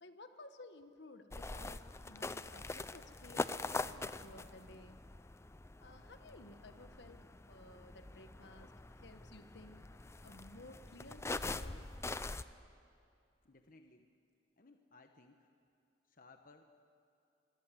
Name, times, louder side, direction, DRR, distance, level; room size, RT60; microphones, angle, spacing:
voice 1, 0.0-5.0 5.8-9.8 10.2-11.9, left 2 dB, 70° left, 8 dB, 1.5 m, -56 dB
sound 1, 1.3-12.4, left 2 dB, 15° left, 0.5 m, -44 dB
voice 2, 13.4-14.1 14.6-15.5 16.0-16.6, left 3 dB, 50° left, 5 dB, 1.1 m, -61 dB
25.5 x 23.0 x 7.7 m, 2.6 s
head